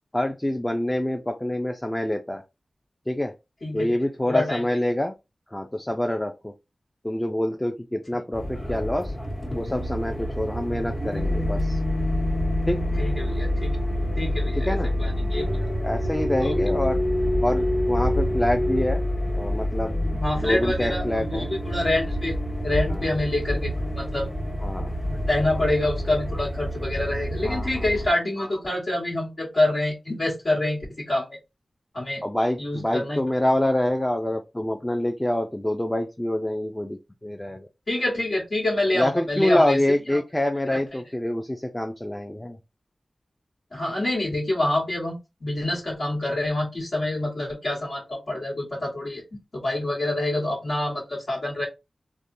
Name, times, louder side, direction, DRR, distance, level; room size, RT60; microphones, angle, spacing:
voice 1, 0.1-2.4 3.1-3.3 3.7-5.1 5.5-6.5 7.0-9.1 9.5-11.8 12.7-12.8 14.6-14.9 15.8-17.0 17.4-19.0 19.4-21.5 22.9-23.1 24.6-24.9 27.4-27.8 32.2-37.7 38.9-42.6, left 1 dB, 20° left, 0.4 m, -26 dB
voice 2, 3.6-4.0 4.3-4.7 13.0-13.8 14.2-15.5 16.4-16.6 20.2-22.3 22.6-24.3 25.1-31.3 31.9-32.2 32.6-33.2 37.9-39.8 40.1-40.2 40.7-40.8 43.7-49.2 49.5-51.7, left 1 dB, 65° left, 1.4 m, -26 dB
sound 1, 8.3-28.1, left 1 dB, 35° left, 1.2 m, -27 dB
3.3 x 2.2 x 2.6 m
cardioid pair, 40°, 0 cm